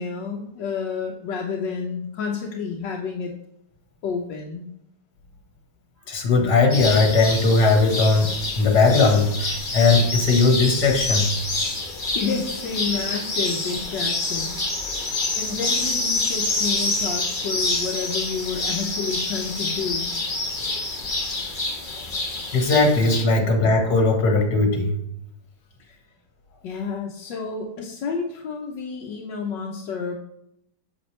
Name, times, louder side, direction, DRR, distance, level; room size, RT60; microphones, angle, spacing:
voice 1, 0.0-3.3 4.0-4.7 12.1-14.5 15.4-20.1 23.3-23.5 25.8-26.0 26.6-30.1, left 5 dB, 85° left, -1 dB, 1.6 m, -30 dB
voice 2, 6.1-8.3 8.6-11.3 22.5-24.9, left 3 dB, 65° left, 2 dB, 2.1 m, -18 dB
sound 1, 6.7-23.2, left 2 dB, 30° left, 1.4 m, -27 dB
8.2 x 7.1 x 3.3 m, 0.78 s
omnidirectional pair, 1.9 m